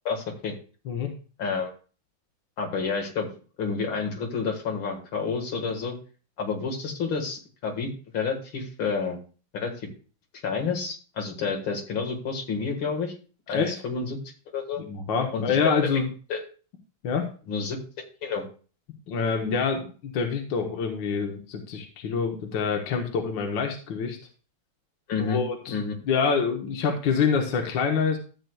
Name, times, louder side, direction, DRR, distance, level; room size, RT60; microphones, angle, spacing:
voice 1, 0.1-0.6 1.4-1.7 2.6-3.3 3.6-6.0 6.4-9.2 9.5-9.9 10.4-13.1 13.5-14.2 14.5-14.8 15.3-15.6 15.8-16.0 16.3-16.4 17.5-17.8 18.2-18.4 25.1-25.9, left 5 dB, 85° left, 2 dB, 2.5 m, -29 dB
voice 2, 13.5-13.8 14.8-16.1 17.0-17.3 19.1-24.2 25.3-25.8 26.0-28.2, left 5 dB, 70° left, 3 dB, 1.7 m, -26 dB
13.5 x 8.0 x 2.3 m, 0.37 s
omnidirectional pair, 2.1 m